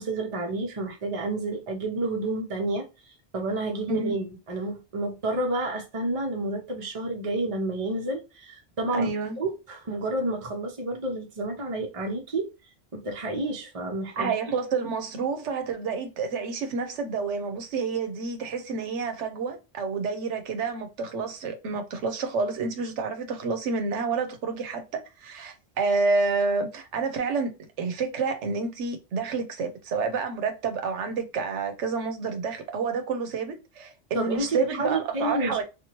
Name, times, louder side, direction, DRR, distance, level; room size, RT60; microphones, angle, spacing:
voice 1, 0.0-2.9 3.3-9.1 9.4-12.5 12.9-14.3 34.1-35.6, right 2 dB, 35° right, 0.7 m, -30 dB
voice 2, 8.9-9.4 14.2-27.5 27.8-35.6, right 4 dB, 85° right, 1.0 m, -29 dB
2.8 x 2.5 x 2.8 m
omnidirectional pair, 1.2 m